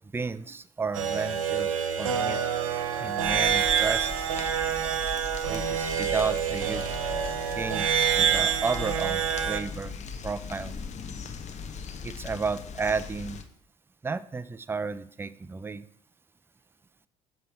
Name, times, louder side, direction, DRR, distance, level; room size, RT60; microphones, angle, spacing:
voice 1, 0.1-2.4 3.0-4.5 5.5-6.8 7.5-9.9 10.2-10.7 12.0-13.4 14.0-15.8, right 4 dB, 15° right, 15 dB, 0.4 m, -32 dB
sound 1, 0.9-9.6, right 8 dB, 85° right, 0.6 m, -27 dB
sound 2, 3.2-13.4, left 5 dB, 45° left, 0.9 m, -39 dB
7.5 x 3.3 x 5.8 m, 0.68 s
hypercardioid pair, 55°, 17 cm